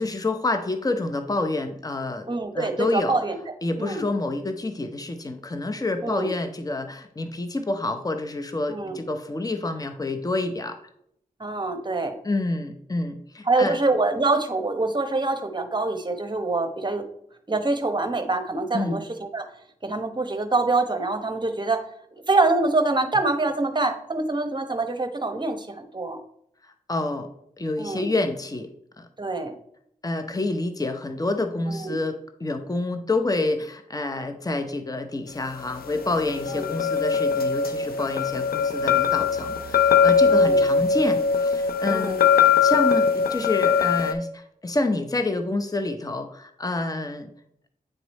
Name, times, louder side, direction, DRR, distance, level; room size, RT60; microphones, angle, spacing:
voice 1, 0.0-2.3 2.5-3.2 3.6-10.8 12.2-13.8 18.7-19.0 26.6-27.3 27.6-28.7 29.0-29.1 30.0-47.3, left 2 dB, 25° left, 7 dB, 0.7 m, -28 dB
voice 2, 2.3-3.4 3.8-4.1 6.0-6.3 8.7-9.0 11.4-12.2 13.4-17.0 17.5-19.5 19.8-21.8 22.1-26.2 27.8-28.1 29.2-29.5 31.7-31.9 36.5-36.7 40.3-40.6 41.9-42.2, right 3 dB, 30° right, 7 dB, 1.0 m, -25 dB
sound 1, 35.8-44.1, left 6 dB, 80° left, 0.6 m, -21 dB
9.0 x 3.0 x 4.1 m, 0.72 s
cardioid pair, 40°, 15 cm